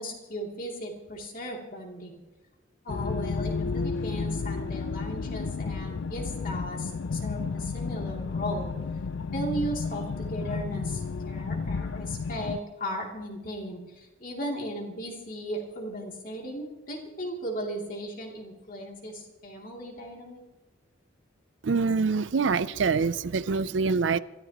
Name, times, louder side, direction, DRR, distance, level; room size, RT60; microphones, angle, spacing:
voice 1, 0.0-2.2 2.8-8.7 9.3-20.4, equal, 45° left, 2.8 m, -36 dB
sound 1, 2.9-12.6, left 4 dB, 70° left, 0.4 m, -32 dB
voice 2, 21.6-24.2, right 4 dB, 70° right, 0.5 m, -25 dB
27.0 x 14.0 x 3.0 m
head